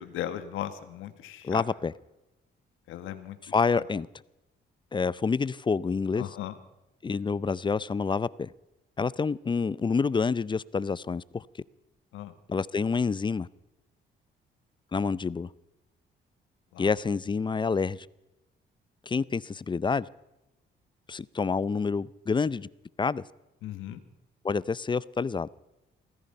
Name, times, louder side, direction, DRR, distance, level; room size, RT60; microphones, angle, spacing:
voice 1, 0.0-1.6 2.9-3.4 6.1-6.6 12.1-12.3 16.7-16.9 23.6-24.0, left 12 dB, 90° left, 1.5 m, -37 dB
voice 2, 1.4-1.9 3.4-4.1 4.9-6.2 7.0-8.5 9.0-11.4 12.5-13.5 14.9-15.5 16.8-18.1 19.1-20.1 21.1-22.7 23.0-23.2 24.4-25.5, left 5 dB, 25° left, 0.5 m, -28 dB
17.0 x 14.5 x 5.5 m
cardioid pair, 90°, 20 cm